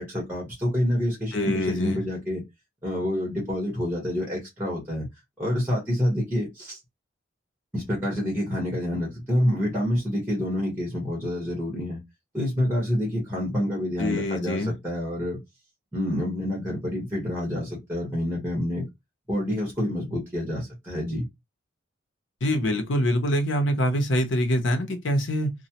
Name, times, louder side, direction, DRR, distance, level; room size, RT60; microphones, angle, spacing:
voice 1, 0.0-2.4 2.8-5.1 5.4-6.8 7.7-12.0 12.3-15.4 15.9-18.8 19.3-21.3, left 1 dB, 10° right, 1.1 m, -27 dB
voice 2, 1.3-2.0 14.0-14.7 22.4-25.5, equal, 80° left, 0.7 m, -24 dB
3.1 x 2.1 x 2.8 m
head